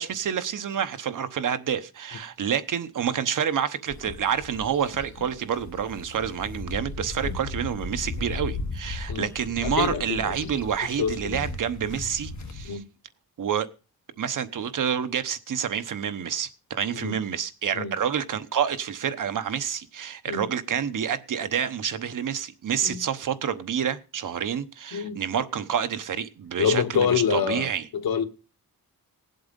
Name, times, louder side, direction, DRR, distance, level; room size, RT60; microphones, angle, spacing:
voice 1, 0.0-12.8 13.4-13.7 14.2-27.9, right 8 dB, 60° right, 1.0 m, -28 dB
sound 1, 3.9-12.7, left 3 dB, 50° left, 1.7 m, -36 dB
voice 2, 9.6-10.3 11.0-11.4 12.6-12.8 16.9-17.1 17.7-17.9 20.3-20.5 22.8-23.0 24.9-25.2 26.6-28.3, left 7 dB, 80° left, 1.3 m, -26 dB
17.5 x 7.8 x 5.2 m
wide cardioid pair, 150°, 36 cm